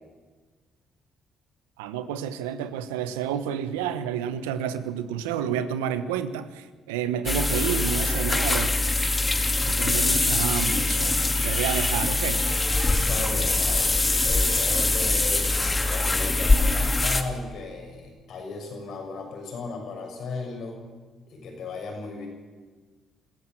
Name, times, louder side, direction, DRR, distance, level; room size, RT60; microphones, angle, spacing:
voice 1, 1.8-8.7 9.7-11.2 11.4-12.4, right 9 dB, 90° right, 1.1 m, -30 dB
sound 1, 7.3-17.2, left 2 dB, 25° left, 2.4 m, -23 dB
voice 2, 12.9-20.9 21.3-22.3, left 3 dB, 65° left, 6.6 m, -36 dB
25.5 x 14.5 x 7.7 m
hypercardioid pair, 50°, 0 cm